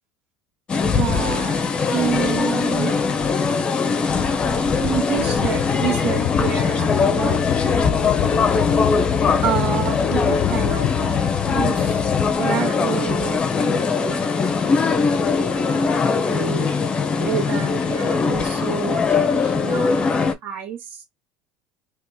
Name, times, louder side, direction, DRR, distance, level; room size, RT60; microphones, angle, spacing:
sound 1, 0.7-20.3, left 5 dB, 25° left, 0.7 m, -21 dB
voice 1, 0.9-1.6 1.9-2.9 4.8-7.4 7.7-8.3 9.4-11.2 11.5-12.0 12.4-16.7 17.2-21.0, right 9 dB, 75° right, 1.7 m, -29 dB
sound 2, 5.2-12.3, left 17 dB, 55° left, 0.4 m, -27 dB
3.0 x 3.0 x 3.5 m
cardioid pair, 145°, 4 cm